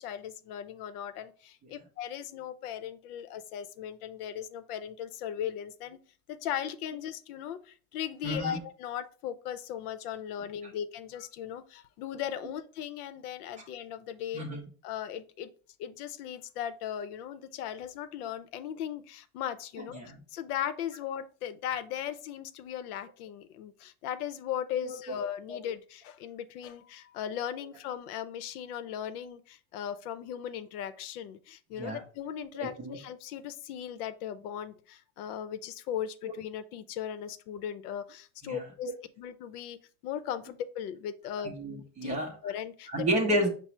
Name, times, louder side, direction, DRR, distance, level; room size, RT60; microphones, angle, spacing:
voice 1, 0.0-6.0 6.3-14.4 14.8-15.5 15.8-38.9 39.2-39.8 40.0-41.5 42.0-42.2 42.4-43.1, left 9 dB, 80° left, 12 dB, 0.6 m, -38 dB
voice 2, 8.2-8.6 14.3-14.7 19.9-20.2 24.8-25.2 25.5-25.6 31.7-32.0 32.6-33.0 38.4-38.6 41.4-42.3 42.9-43.5, right 1 dB, 15° right, 1 dB, 0.5 m, -31 dB
5.9 x 2.0 x 4.3 m, 0.39 s
supercardioid pair, 165°, 44 cm